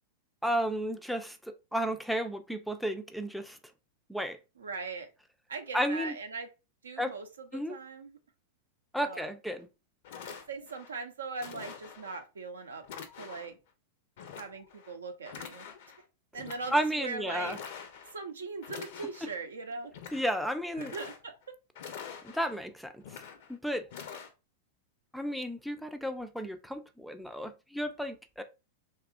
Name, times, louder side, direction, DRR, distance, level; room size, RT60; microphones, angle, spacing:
voice 1, 0.4-3.6 4.1-4.4 5.7-6.1 7.0-7.1 7.5-7.7 8.9-9.7 16.7-17.6 19.2-19.3 20.1-20.9 22.2-23.2 23.5-23.8 25.1-28.4, equal, ahead, 0.3 m, -33 dB
voice 2, 4.6-5.1 5.5-6.5 6.8-8.2 9.0-9.3 10.2-12.8 13.2-13.5 14.4-15.7 16.3-17.6 18.1-19.9 20.8-21.4, right 4 dB, 80° right, 0.5 m, -40 dB
sound 1, 9.6-9.7 10.0-10.9 11.4-12.2 12.8-13.6 14.2-14.9 15.2-16.0 16.3-16.9 17.4-18.2 18.6-19.4 19.8-20.4 20.7-21.4 21.7-22.6 23.0-23.5 23.9-24.3, left 7 dB, 60° left, 0.5 m, -46 dB
2.8 x 2.4 x 2.4 m
hypercardioid pair, 95°, 0 cm